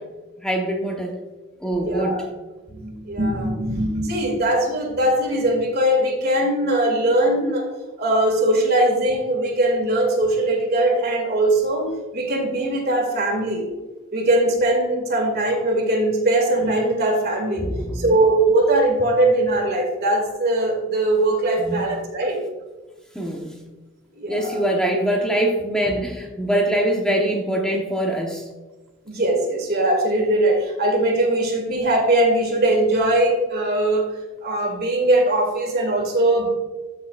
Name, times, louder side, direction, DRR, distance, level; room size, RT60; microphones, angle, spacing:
voice 1, 0.4-1.1 1.6-2.2 17.6-18.0 21.7-21.8 23.1-23.5 24.3-28.5, right 1 dB, 5° left, 0 dB, 0.9 m, -23 dB
voice 2, 1.8-2.2 2.7-7.7 8.0-13.7 14.1-17.7 17.9-22.4 23.2-23.3 24.2-24.6 29.1-34.1 34.4-36.5, right 1 dB, 50° right, 2 dB, 2.2 m, -20 dB
14.0 x 6.6 x 2.4 m, 1.2 s
head